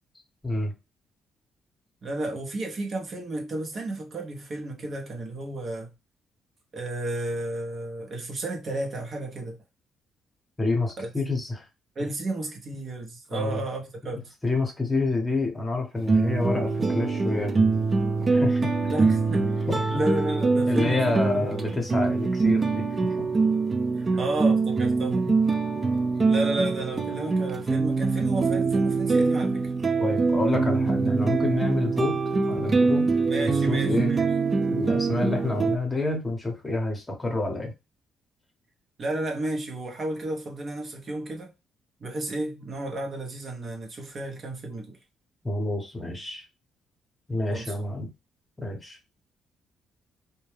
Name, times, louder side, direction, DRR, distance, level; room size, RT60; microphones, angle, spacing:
voice 1, 2.0-5.9 6.7-9.6 11.0-11.1 12.0-14.3 18.9-19.5 19.9-21.9 24.0-25.3 26.3-29.7 33.3-34.3 39.0-41.5 42.0-45.0 47.5-47.7, right 2 dB, 45° right, 0.7 m, -32 dB
voice 2, 10.6-11.6 12.0-12.1 13.3-13.6 14.4-17.6 18.3-18.7 19.7-19.8 20.7-22.9 23.2-23.3 25.3-25.4 30.0-32.2 32.5-34.1 34.7-37.7 45.4-46.4 47.3-48.1 48.6-49.0, left 2 dB, 20° left, 0.9 m, -28 dB
sound 1, 16.0-35.8, right 4 dB, 30° right, 0.3 m, -24 dB
2.2 x 2.1 x 3.2 m
cardioid pair, 90°, 0 cm